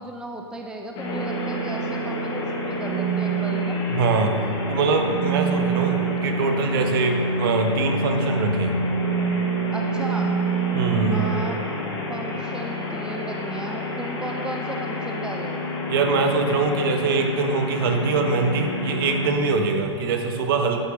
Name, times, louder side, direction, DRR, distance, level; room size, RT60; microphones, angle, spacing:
voice 1, 0.0-3.8 9.7-10.3 11.1-11.6 12.1-15.6, right 2 dB, 5° right, 2 dB, 0.7 m, -35 dB
sound 1, 0.9-19.3, right 1 dB, 35° left, 2.8 m, -27 dB
voice 2, 3.9-4.4 4.7-8.7 10.7-11.2 15.9-20.8, right 4 dB, 50° right, 4 dB, 1.4 m, -23 dB
11.0 x 8.3 x 6.4 m, 2.8 s
figure-of-eight pair, 110°, 15 cm